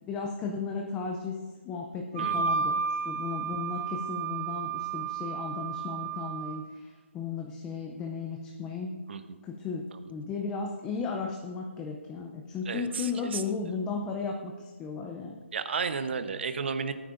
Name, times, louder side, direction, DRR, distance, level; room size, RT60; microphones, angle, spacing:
voice 1, 0.0-9.0 9.4-15.4, left 5 dB, 10° left, 1 dB, 0.5 m, -35 dB
Wind instrument woodwind instrument, 2.1-6.6, right 6 dB, 35° right, 2.8 m, -32 dB
voice 2, 2.2-2.6 9.1-9.2 12.7-13.5 15.5-16.9, right 5 dB, 55° right, 10 dB, 0.9 m, -33 dB
18.0 x 9.1 x 2.6 m, 1.4 s
hypercardioid pair, 165°, 7 cm